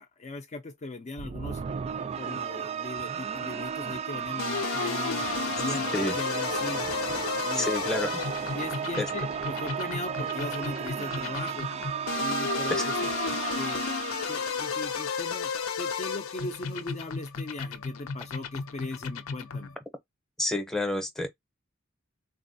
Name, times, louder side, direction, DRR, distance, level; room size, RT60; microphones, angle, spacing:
voice 1, 0.0-1.6 2.2-6.8 7.4-7.7 8.5-11.7 12.2-13.0 13.5-13.9 14.3-15.5 15.8-19.7, left 2 dB, 35° left, 0.4 m, -39 dB
sound 1, 1.2-15.6, right 7 dB, 30° right, 0.3 m, -34 dB
sound 2, 4.4-19.7, left 5 dB, 85° left, 0.6 m, -33 dB
voice 2, 7.5-8.2 9.0-9.1 12.7-12.8 20.4-21.3, left 2 dB, ahead, 0.7 m, -29 dB
4.0 x 2.2 x 2.6 m
head